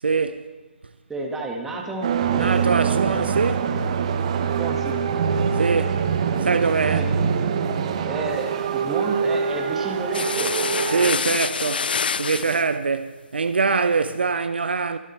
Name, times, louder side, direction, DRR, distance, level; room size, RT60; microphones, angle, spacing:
voice 1, 0.0-0.5 2.3-3.8 5.5-6.0 6.4-7.0 10.9-15.0, right 4 dB, 55° right, 0.6 m, -23 dB
voice 2, 1.1-2.5 4.6-5.0 6.9-7.3 8.0-10.5, right 3 dB, 5° right, 1.5 m, -31 dB
sound 1, 2.0-11.1, right 6 dB, 30° right, 1.0 m, -24 dB
sound 2, 10.1-12.7, left 6 dB, 50° left, 0.4 m, -26 dB
24.0 x 8.3 x 4.2 m
figure-of-eight pair, 145°, 7 cm